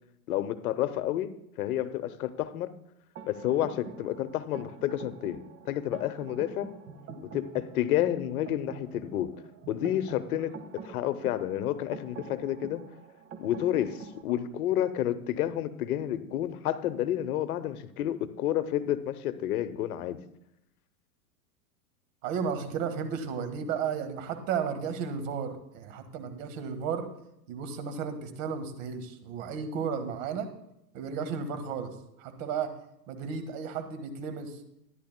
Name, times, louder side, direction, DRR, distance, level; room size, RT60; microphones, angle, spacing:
voice 1, 0.3-1.3 1.6-2.7 3.3-6.7 7.3-9.3 9.7-10.6 10.8-12.8 13.4-20.2, left 12 dB, 70° left, 13 dB, 0.9 m, -30 dB
sound 1, 3.2-14.2, right 4 dB, 35° right, 1.6 m, -46 dB
voice 2, 22.2-27.1 27.5-30.5 30.9-31.9 32.2-32.7 33.1-34.6, right 6 dB, 55° right, 8 dB, 1.7 m, -33 dB
14.0 x 11.0 x 2.2 m, 0.80 s
hypercardioid pair, 115°, 45 cm